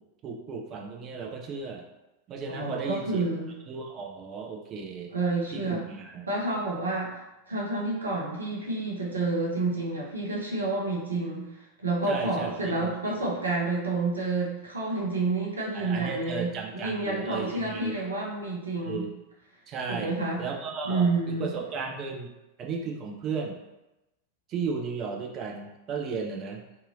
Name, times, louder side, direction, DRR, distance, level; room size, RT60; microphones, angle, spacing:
voice 1, 0.2-1.8 2.3-3.3 3.7-5.1 5.5-6.3 12.0-13.2 15.7-18.0 18.8-19.1 19.7-20.1 20.4-22.3 22.6-23.6 24.5-26.6, right 5 dB, 30° right, 0 dB, 0.5 m, -35 dB
voice 2, 2.5-3.5 5.1-5.8 6.3-7.1 7.5-19.1 19.9-20.4 20.8-21.5, right 3 dB, 75° right, -4 dB, 0.6 m, -29 dB
2.7 x 2.6 x 2.6 m, 0.97 s
figure-of-eight pair, 90°, 0 cm